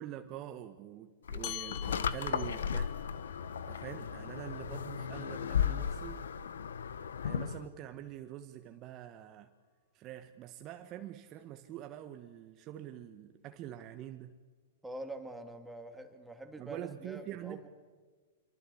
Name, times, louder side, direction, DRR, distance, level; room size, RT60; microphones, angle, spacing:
voice 1, 0.0-3.0 3.7-6.3 7.2-9.5 9.9-14.4 16.6-17.7, right 11 dB, 35° right, 1.3 m, -45 dB
sound 1, 1.3-7.6, left 7 dB, 75° left, 1.2 m, -35 dB
sound 2, 1.4-6.2, left 17 dB, 35° left, 0.7 m, -48 dB
voice 2, 14.8-17.7, right 2 dB, 5° right, 2.8 m, -45 dB
26.0 x 23.5 x 8.6 m
hypercardioid pair, 115°, 0 cm